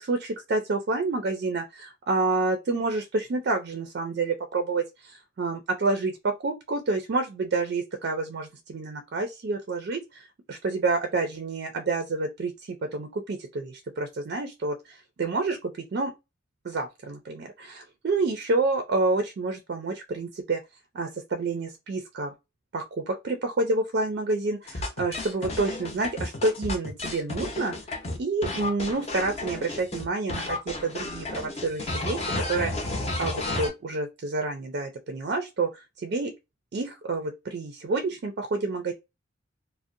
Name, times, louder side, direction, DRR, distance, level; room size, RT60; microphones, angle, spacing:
voice 1, 0.0-16.1 16.6-20.6 20.9-22.3 22.7-27.7 28.2-32.7 33.2-36.3 36.7-38.9, right 3 dB, 55° right, 0.4 m, -28 dB
sound 1, 24.7-30.0 30.3-33.7, left 2 dB, 35° left, 0.6 m, -32 dB
2.6 x 2.0 x 2.4 m
head